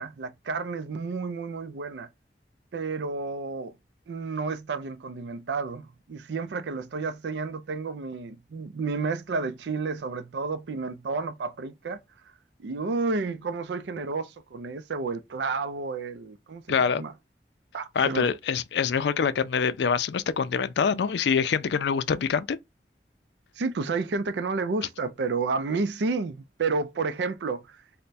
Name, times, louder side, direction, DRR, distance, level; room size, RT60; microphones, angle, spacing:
voice 1, 0.0-2.1 2.7-3.7 4.1-12.0 12.6-17.1 17.7-18.3 23.6-28.0, right 4 dB, 80° right, 0.4 m, -31 dB
voice 2, 16.7-17.0 18.0-22.6, left 6 dB, 75° left, 0.4 m, -25 dB
3.3 x 2.1 x 4.0 m
head